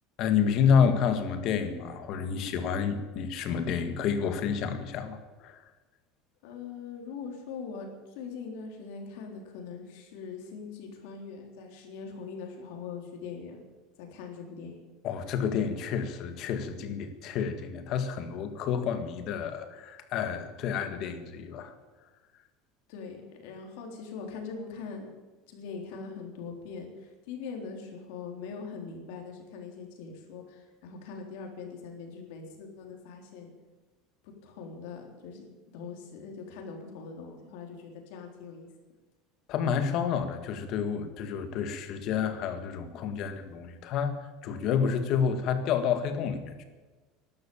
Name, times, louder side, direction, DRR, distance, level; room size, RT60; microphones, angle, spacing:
voice 1, 0.2-5.6 15.0-21.7 39.5-46.6, left 7 dB, 40° left, 8 dB, 1.8 m, -29 dB
voice 2, 6.4-13.7 14.0-14.7 22.9-25.1 25.5-33.5 34.2-38.7, left 5 dB, 65° left, 2 dB, 3.6 m, -42 dB
13.0 x 12.0 x 8.6 m, 1.3 s
cardioid pair, 175°, 0 cm